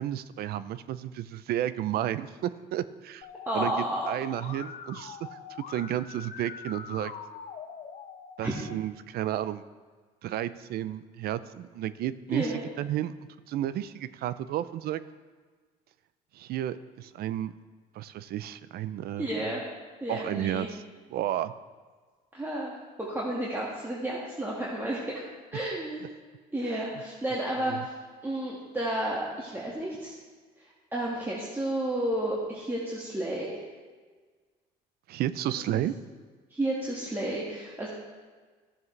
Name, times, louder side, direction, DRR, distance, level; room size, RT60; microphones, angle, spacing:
voice 1, 0.0-3.3 3.5-3.7 4.1-5.4 5.7-7.1 8.4-9.6 10.2-13.1 13.5-15.0 16.3-17.5 17.9-19.3 20.1-20.8 21.1-21.5 25.6-25.7 26.7-26.8 27.7-27.8 35.1-35.9, right 12 dB, 65° right, 15 dB, 0.5 m, -32 dB
Musical instrument, 3.2-8.8, left 6 dB, 50° left, 0.9 m, -44 dB
voice 2, 3.5-4.1 8.4-8.6 12.3-12.6 19.2-19.6 20.0-20.7 22.3-22.7 23.0-25.2 25.5-26.1 26.5-27.9 28.2-30.1 30.6-33.6 35.5-35.8 36.5-37.9, right 1 dB, 10° right, -5 dB, 1.7 m, -31 dB
14.5 x 7.2 x 3.2 m, 1.4 s
cardioid pair, 110°, 17 cm